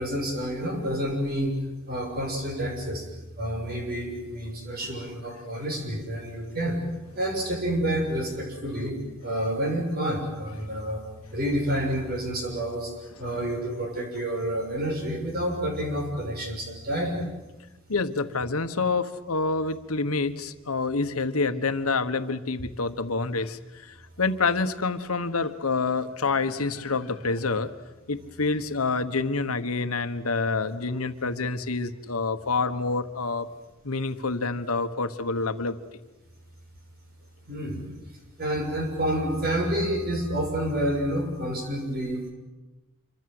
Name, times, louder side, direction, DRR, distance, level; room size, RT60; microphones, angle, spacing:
voice 1, 0.0-1.6 1.9-3.0 3.4-6.8 7.1-11.0 11.3-12.9 13.2-17.2 37.5-37.8 38.4-42.2, right 1 dB, 45° right, 3 dB, 6.6 m, -29 dB
voice 2, 17.9-27.7 28.1-33.5 33.8-35.8, left 3 dB, 80° left, 9 dB, 1.3 m, -27 dB
26.5 x 24.0 x 7.9 m, 1.1 s
head